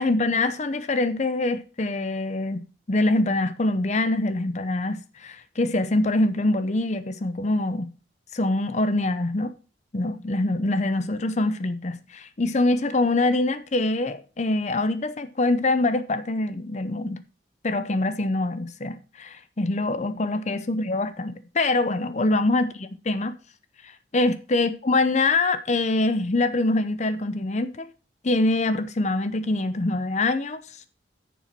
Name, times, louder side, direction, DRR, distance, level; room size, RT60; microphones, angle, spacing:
voice 1, 0.0-7.9 8.3-9.5 9.9-17.2 17.6-23.3 23.8-27.9 28.2-30.8, left 2 dB, 40° left, 0.7 m, -24 dB
10.0 x 7.1 x 4.5 m
head